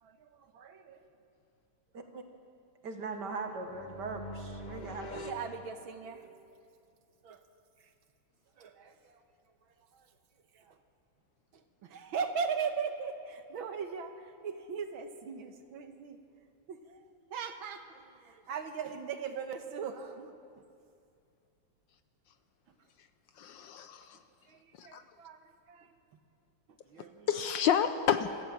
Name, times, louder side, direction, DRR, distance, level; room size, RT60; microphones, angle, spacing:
voice 1, 0.0-1.1 5.1-6.3 7.2-7.4 7.8-7.9 8.6-9.2 9.8-10.1 10.5-10.8 11.5-16.2 16.7-17.0 17.3-20.6 22.7-22.8 24.5-26.0 26.8-27.4, right 6 dB, 70° right, 7 dB, 1.9 m, -39 dB
voice 2, 2.8-5.2, right 4 dB, 55° right, 5 dB, 2.0 m, -40 dB
sound 1, 3.4-6.4, left 1 dB, 40° left, 0.6 m, -45 dB
voice 3, 23.4-24.2 24.8-25.0 27.3-28.4, left 8 dB, 70° left, 10 dB, 1.3 m, -30 dB
25.0 x 14.5 x 7.4 m, 2.4 s
omnidirectional pair, 2.4 m